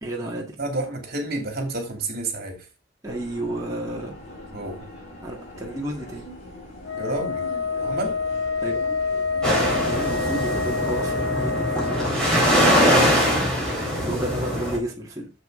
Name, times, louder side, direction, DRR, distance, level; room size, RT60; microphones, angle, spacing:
voice 1, 0.0-0.6 3.0-4.1 5.2-6.3 8.6-8.8 9.9-12.2 12.5-13.7 14.0-15.3, right 1 dB, 15° right, 2.0 m, -31 dB
voice 2, 0.6-2.7 4.5-4.9 7.0-7.5 7.8-8.2, right 2 dB, 50° right, 2.8 m, -30 dB
sound 1, 3.0-11.0, equal, 35° left, 4.3 m, -41 dB
Wind instrument woodwind instrument, 6.8-12.1, left 4 dB, 60° left, 1.2 m, -27 dB
sound 2, 9.4-14.8, equal, 5° left, 4.2 m, -22 dB
7.9 x 7.3 x 3.8 m
head